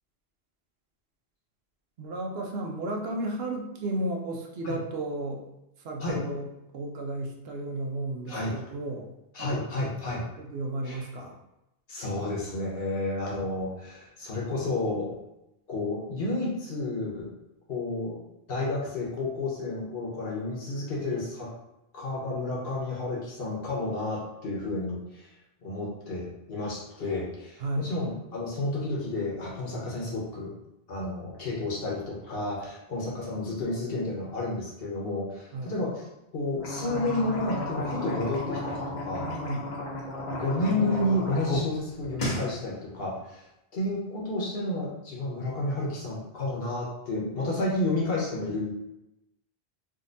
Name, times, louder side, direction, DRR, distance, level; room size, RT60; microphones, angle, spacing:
voice 1, 2.0-5.4 5.8-6.5 6.7-9.1 9.4-9.6 10.4-11.4 27.6-27.9 35.5-35.8 39.2-39.8, right 2 dB, 70° right, 1 dB, 0.9 m, -33 dB
voice 2, 9.3-10.2 10.8-11.0 11.9-15.1 15.7-17.3 17.7-18.2 18.5-21.5 21.9-25.3 25.6-30.5 30.9-35.9 36.3-39.3 40.4-43.4 43.7-48.7, left 2 dB, 65° left, -4 dB, 1.2 m, -31 dB
sound 1, 36.5-41.6 41.9-42.5, left 1 dB, 50° left, 0.8 m, -33 dB
3.8 x 2.6 x 2.6 m, 0.89 s
omnidirectional pair, 1.1 m